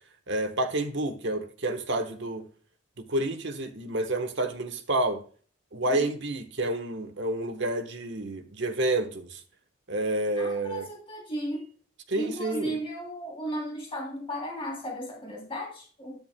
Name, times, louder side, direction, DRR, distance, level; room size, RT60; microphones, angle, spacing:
voice 1, 0.3-2.4 3.0-5.2 5.7-9.4 9.9-10.9 12.1-12.8, right 1 dB, 60° right, 1.2 m, -29 dB
voice 2, 10.4-11.7 12.1-16.2, equal, 30° left, 3.1 m, -35 dB
10.5 x 9.1 x 2.2 m
head